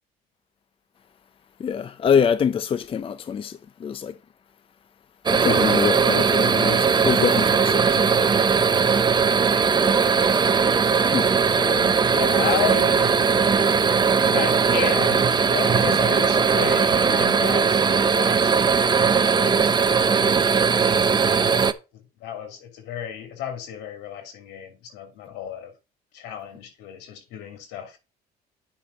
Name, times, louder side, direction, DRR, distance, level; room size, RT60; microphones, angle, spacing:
voice 1, 1.6-3.5 3.8-4.1 5.3-8.1 11.1-11.3, left 7 dB, 35° left, 0.5 m, -24 dB
sound 1, 5.3-21.7, right 6 dB, 25° right, 0.7 m, -19 dB
voice 2, 11.5-13.4 14.2-20.3 21.3-21.7 22.2-25.7 26.1-28.0, left 9 dB, 90° left, 3.0 m, -33 dB
9.7 x 5.9 x 4.0 m
cardioid pair, 110°, 17 cm